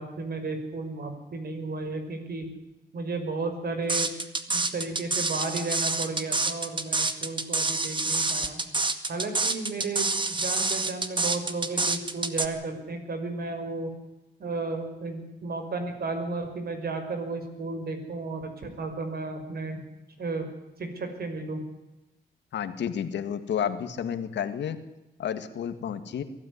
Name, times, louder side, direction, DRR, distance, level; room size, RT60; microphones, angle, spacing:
voice 1, 0.0-2.5 2.9-4.1 4.5-8.6 9.1-13.9 14.4-19.8 20.2-20.5 20.8-21.6, right 3 dB, 60° right, 6 dB, 5.6 m, -33 dB
sound 1, 3.9-12.5, right 3 dB, 25° right, 2.0 m, -27 dB
voice 2, 22.5-24.8 25.2-26.2, left 8 dB, 85° left, 10 dB, 1.9 m, -31 dB
23.0 x 13.0 x 9.7 m, 0.98 s
cardioid pair, 85°, 18 cm